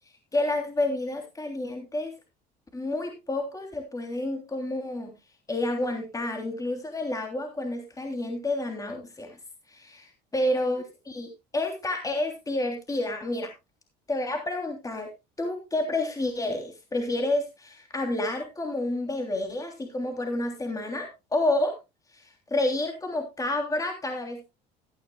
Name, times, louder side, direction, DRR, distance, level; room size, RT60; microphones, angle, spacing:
voice 1, 0.3-2.1 2.7-5.2 5.5-9.4 9.7-13.5 14.1-15.1 15.4-21.8 22.1-22.2 22.5-24.4, left 1 dB, 15° left, 4 dB, 3.1 m, -29 dB
16.5 x 11.0 x 2.3 m, 0.24 s
supercardioid pair, 95°, 20 cm